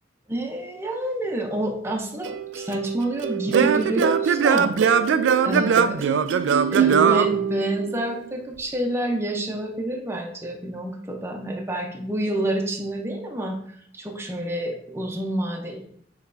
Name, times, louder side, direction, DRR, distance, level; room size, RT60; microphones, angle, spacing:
voice 1, 0.3-4.7 5.4-6.1 6.7-13.6 13.9-15.8, right 1 dB, 15° right, 1 dB, 0.6 m, -28 dB
Singing / Plucked string instrument, 2.3-8.1, right 7 dB, 85° right, 0.3 m, -21 dB
6.6 x 3.1 x 2.6 m, 0.65 s
head